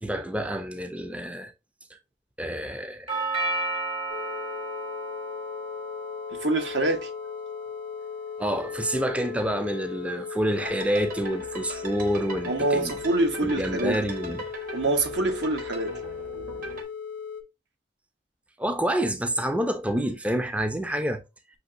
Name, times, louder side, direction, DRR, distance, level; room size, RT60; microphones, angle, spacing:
voice 1, 0.0-1.5 2.4-3.2 8.4-13.0 13.4-14.4 18.6-21.2, equal, 5° right, 0.3 m, -28 dB
Doorbell, 3.1-11.1, right 2 dB, 30° right, 0.7 m, -35 dB
sound 1, 4.1-17.4, left 6 dB, 85° left, 0.7 m, -37 dB
voice 2, 6.3-7.1 12.5-14.0 14.7-15.9, right 2 dB, 80° right, 1.0 m, -25 dB
sound 2, 10.5-16.8, right 2 dB, 50° right, 1.0 m, -40 dB
6.0 x 2.9 x 2.5 m
head